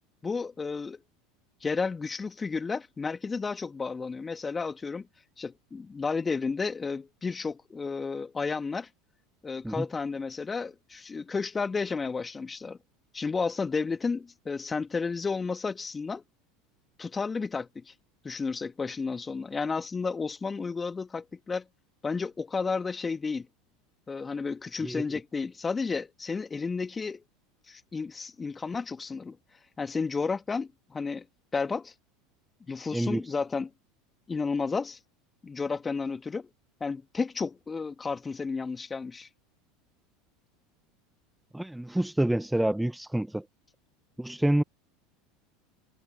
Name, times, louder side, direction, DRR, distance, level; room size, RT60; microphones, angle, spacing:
voice 1, 0.2-1.0 1.6-5.1 5.4-8.9 9.4-12.8 13.1-16.2 17.0-17.9 18.2-21.7 22.0-23.5 24.1-27.2 27.7-29.4 29.8-31.3 31.5-31.9 32.7-33.7 34.3-35.0 35.4-36.5 36.8-39.3, left 4 dB, 20° left, 2.1 m, -32 dB
voice 2, 41.5-43.4 44.2-44.6, right 1 dB, 5° right, 0.9 m, -27 dB
figure-of-eight pair, 75°, 0 cm